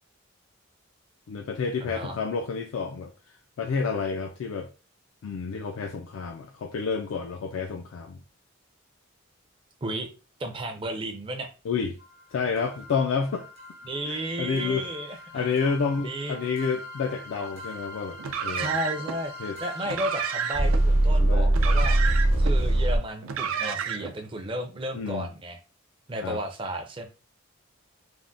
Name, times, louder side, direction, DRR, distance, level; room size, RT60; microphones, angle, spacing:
voice 1, 1.3-3.1 3.6-4.7 5.2-8.2 11.7-12.0 12.3-13.5 14.1-14.9 15.3-18.7 19.4-19.6 21.2-21.5 24.9-25.3 26.2-26.4, left 5 dB, 80° left, 0.3 m, -29 dB
voice 2, 1.8-2.2 9.8-10.1 10.4-11.5 13.8-15.5 16.0-16.4 18.6-19.3 19.6-22.0 22.4-25.6 26.1-27.1, right 1 dB, 25° right, 0.4 m, -33 dB
sound 1, 12.6-23.0, right 1 dB, 65° right, 0.9 m, -26 dB
Car, 18.2-19.2 19.8-20.8 21.5-22.5 23.2-24.2, right 7 dB, 90° right, 0.4 m, -31 dB
3.4 x 2.1 x 2.5 m
head